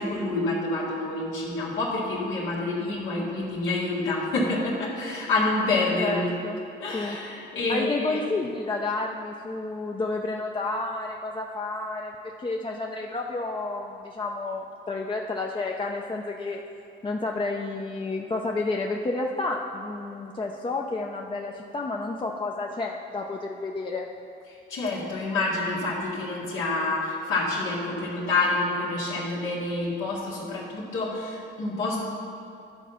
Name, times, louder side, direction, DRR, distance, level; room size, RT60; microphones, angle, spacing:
voice 1, 0.0-6.4 6.8-8.2 24.5-32.0, left 2 dB, 85° left, -7 dB, 1.8 m, -28 dB
voice 2, 6.0-6.6 6.9-7.2 7.7-16.6 17.0-24.1, left 3 dB, 25° left, 0 dB, 0.5 m, -30 dB
11.5 x 4.1 x 5.7 m, 2.7 s
cardioid pair, 90°, 20 cm